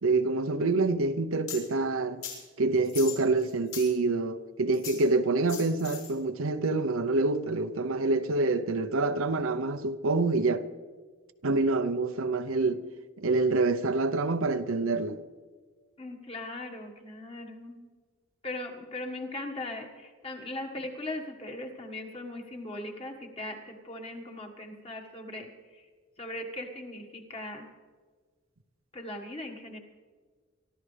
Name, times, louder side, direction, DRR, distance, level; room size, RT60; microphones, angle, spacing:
voice 1, 0.0-2.2 2.6-10.6 11.4-12.8 13.2-15.2, right 3 dB, 75° right, 0.7 m, -26 dB
sound 1, 1.5-1.6 2.2-2.4 2.8-3.9 4.7-5.0 5.5-6.1, left 8 dB, 80° left, 5.9 m, -39 dB
voice 2, 16.0-17.9 18.4-25.9 26.2-27.7 28.9-29.8, left 1 dB, 25° left, 1.6 m, -39 dB
24.5 x 13.5 x 3.4 m
head